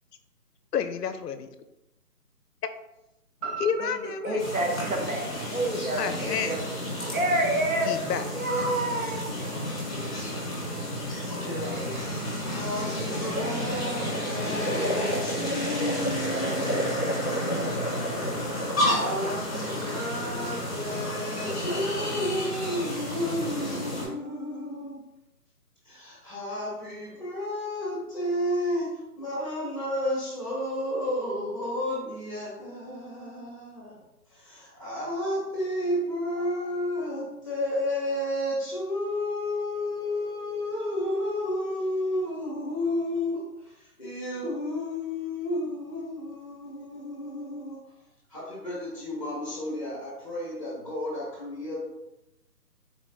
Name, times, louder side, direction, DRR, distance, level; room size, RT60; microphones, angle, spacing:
voice 1, 0.7-1.5 3.6-4.4 6.0-6.6 7.9-8.2, left 7 dB, 75° left, 9 dB, 0.5 m, -29 dB
sound 1, 3.4-7.5 7.9-8.0, right 6 dB, 25° right, 1.2 m, -42 dB
voice 2, 4.2-6.6 7.1-7.9 8.3-9.2, right 1 dB, 60° right, 1 dB, 0.8 m, -28 dB
sound 2, 4.4-24.1, equal, 40° left, 1.4 m, -31 dB
voice 3, 9.2-10.1 11.3-12.1 12.4-17.8 18.5-25.1 25.8-34.0 34.3-47.8 48.3-51.8, left 1 dB, 20° left, -6 dB, 1.0 m, -32 dB
3.9 x 3.1 x 2.2 m, 0.92 s
hypercardioid pair, 175°, 48 cm